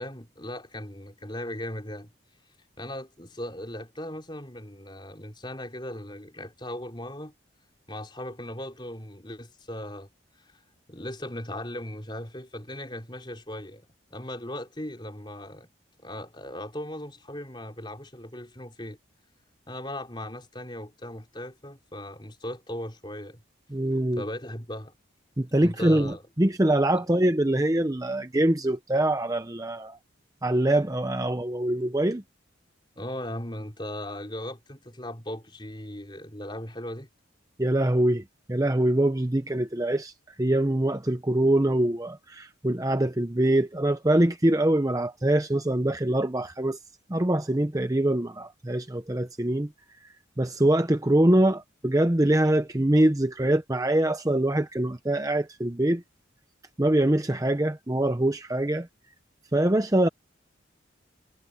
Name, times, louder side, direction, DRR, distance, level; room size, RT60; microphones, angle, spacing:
voice 1, 0.0-2.1 2.8-7.3 7.9-10.1 10.4-10.6 10.9-15.7 16.0-19.0 19.7-23.4 24.2-24.9 25.6-26.2 26.9-27.0 33.0-37.1, left 1 dB, 25° left, 3.9 m, -38 dB
voice 2, 23.7-24.2 25.4-30.0 30.4-32.2 37.6-46.8 47.1-49.7 50.4-56.0 56.8-58.9 59.5-60.1, right 1 dB, 15° right, 0.7 m, -24 dB
head